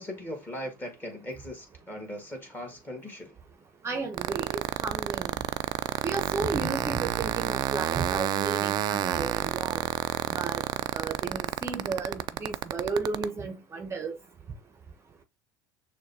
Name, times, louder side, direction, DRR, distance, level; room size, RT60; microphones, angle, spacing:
voice 1, 0.0-3.3, equal, 20° left, 1.7 m, -39 dB
voice 2, 3.8-5.3 6.0-9.8 10.3-10.6 10.9-14.2, right 4 dB, 25° right, 0.7 m, -33 dB
sound 1, 4.1-13.2, right 12 dB, 45° right, 0.3 m, -29 dB
6.3 x 2.3 x 2.6 m
hypercardioid pair, 90°, 10 cm